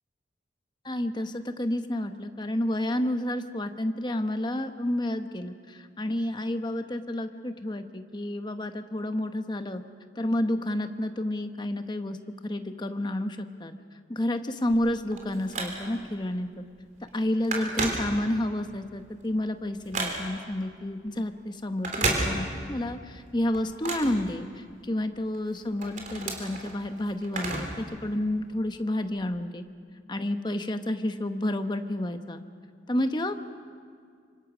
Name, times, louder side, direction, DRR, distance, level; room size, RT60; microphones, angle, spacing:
voice 1, 0.8-9.8 10.2-12.2 12.4-13.7 14.1-16.6 17.1-29.6 30.1-32.4 32.9-33.4, left 1 dB, 25° left, 8 dB, 1.0 m, -30 dB
Telephone, 14.7-16.1 16.6-16.8 17.1-18.6 19.0-20.5 21.7-22.8 23.1-24.9 25.3-27.9 28.1-28.2 29.1-29.2, right 2 dB, 45° right, 3.7 m, -32 dB
26.0 x 25.0 x 6.1 m, 2.1 s
head